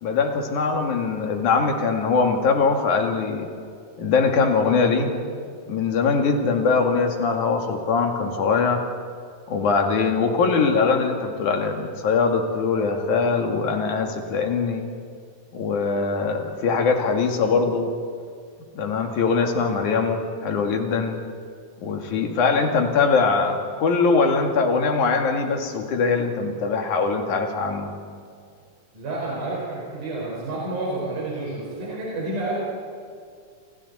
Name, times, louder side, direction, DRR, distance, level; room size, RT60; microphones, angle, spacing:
voice 1, 0.0-3.5 4.0-5.1 5.7-8.8 9.5-14.8 15.5-17.9 18.7-21.2 21.8-27.9, left 4 dB, 60° left, 3 dB, 3.4 m, -22 dB
voice 2, 28.9-32.6, right 2 dB, 60° right, -5 dB, 6.5 m, -29 dB
29.5 x 27.0 x 4.2 m, 2.2 s
omnidirectional pair, 3.9 m